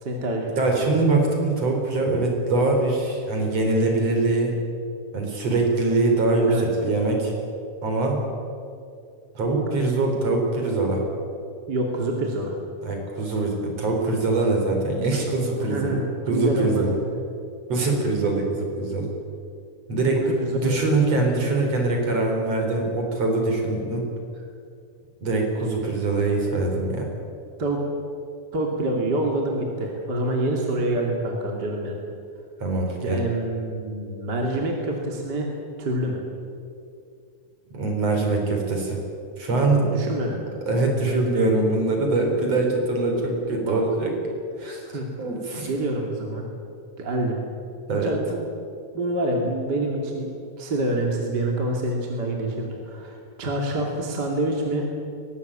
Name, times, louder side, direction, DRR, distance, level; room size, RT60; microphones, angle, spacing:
voice 1, 0.0-0.7 6.4-6.7 11.7-12.6 15.6-16.9 20.2-20.7 27.6-27.8 28.5-32.0 33.0-35.5 35.8-36.2 39.8-40.4 43.7-43.8 44.9-45.1 45.7-46.5 47.0-47.4 48.0-48.4 48.9-50.3 50.6-54.9, right 1 dB, 30° right, 0 dB, 2.8 m, -26 dB
voice 2, 0.6-4.5 5.1-6.5 6.8-7.3 7.8-8.2 9.3-11.0 12.8-16.9 17.7-19.1 19.9-24.1 25.2-27.1 32.6-33.2 37.7-39.0 39.4-39.9 40.7-44.2 44.6-44.8 45.2-45.7 47.9-48.1, right 2 dB, 45° right, 1 dB, 5.1 m, -23 dB
22.0 x 19.0 x 8.8 m, 2.5 s
omnidirectional pair, 3.9 m